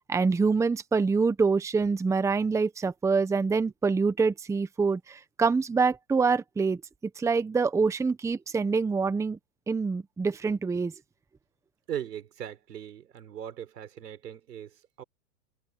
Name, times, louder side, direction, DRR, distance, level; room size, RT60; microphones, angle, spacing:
voice 1, 0.1-6.8 7.2-9.4 9.7-10.9, right 4 dB, 5° right, 1.0 m, -25 dB
voice 2, 11.9-15.0, right 10 dB, 90° right, 4.6 m, -39 dB
hypercardioid pair, 135°, 47 cm